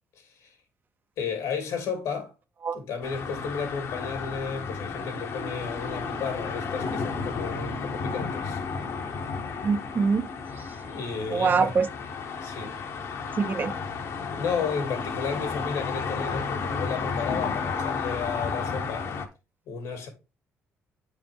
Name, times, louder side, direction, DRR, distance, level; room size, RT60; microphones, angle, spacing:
voice 1, 0.2-0.5 1.2-2.3 2.7-8.6 10.9-11.7 12.4-12.8 14.4-19.1 19.7-20.1, left 5 dB, 85° left, 2.5 m, -33 dB
sound 1, 3.0-19.3, left 5 dB, 65° left, 1.2 m, -32 dB
voice 2, 9.6-10.3 11.3-11.9 13.4-13.7, right 5 dB, 40° right, 0.7 m, -24 dB
8.6 x 4.8 x 3.6 m
cardioid pair, 100°, 5 cm